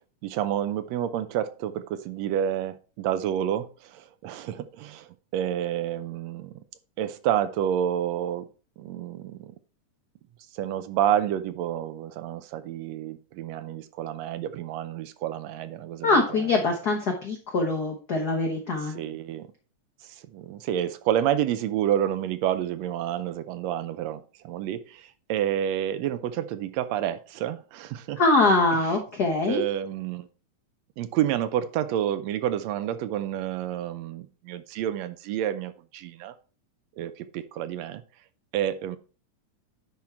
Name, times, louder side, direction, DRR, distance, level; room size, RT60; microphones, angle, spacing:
voice 1, 0.2-6.5 7.0-8.5 8.8-9.5 10.5-16.2 18.9-19.5 20.1-28.2 29.5-30.3 31.0-36.3 37.0-38.0 38.5-39.0, right 10 dB, 75° right, 1.7 m, -29 dB
voice 2, 16.0-19.0 28.2-29.6, left 3 dB, 70° left, 0.9 m, -23 dB
10.5 x 3.7 x 4.4 m
omnidirectional pair, 3.4 m